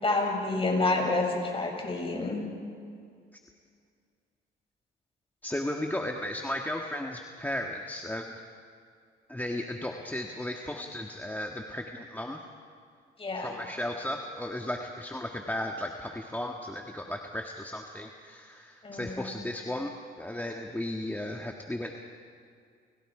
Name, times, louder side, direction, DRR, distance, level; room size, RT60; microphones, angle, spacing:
voice 1, 0.0-2.5 13.2-13.5 18.8-19.2, left 2 dB, 30° left, 1 dB, 7.1 m, -28 dB
voice 2, 5.4-8.3 9.3-12.4 13.3-21.9, left 1 dB, 10° left, 2 dB, 1.7 m, -35 dB
30.0 x 29.5 x 5.0 m, 2.2 s
cardioid pair, 90°, 20 cm